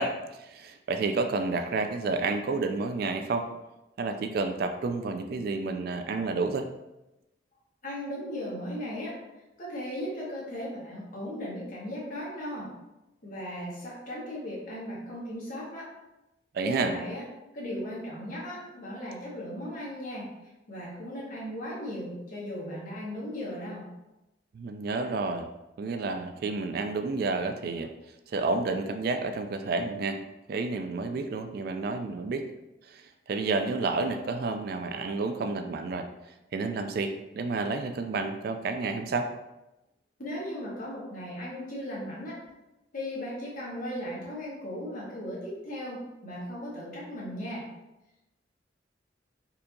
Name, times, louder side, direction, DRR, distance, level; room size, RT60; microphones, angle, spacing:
voice 1, 0.0-3.5 4.0-6.7 16.5-16.9 24.5-25.5 25.8-27.9 28.3-30.2 30.5-32.5 32.9-36.1 36.5-39.3, right 3 dB, 55° right, 7 dB, 0.3 m, -30 dB
voice 2, 7.8-9.2 9.6-12.7 13.2-15.9 16.6-17.2 17.5-20.3 20.7-23.8 40.2-42.4 42.9-47.6, equal, 50° left, -6 dB, 1.3 m, -37 dB
4.3 x 2.7 x 2.6 m, 0.96 s
head